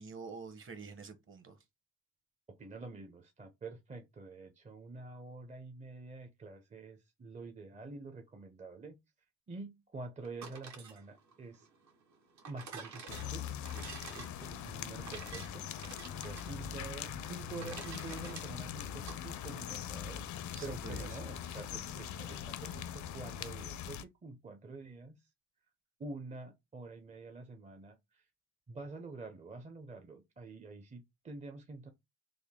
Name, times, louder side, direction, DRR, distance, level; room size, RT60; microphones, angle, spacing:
voice 1, 0.0-1.6 20.5-21.1, right 5 dB, 40° right, 1.0 m, -47 dB
voice 2, 2.6-9.0 9.5-11.7 12.5-13.4 13.7-15.7 16.1-20.2 20.6-25.3 26.0-28.2 28.7-31.9, right 3 dB, 25° right, 0.5 m, -47 dB
sound 1, 10.2-19.2, right 5 dB, 65° right, 1.1 m, -50 dB
sound 2, 13.1-24.0, left 9 dB, 70° left, 0.5 m, -42 dB
3.5 x 2.2 x 3.5 m
cardioid pair, 90°, 30 cm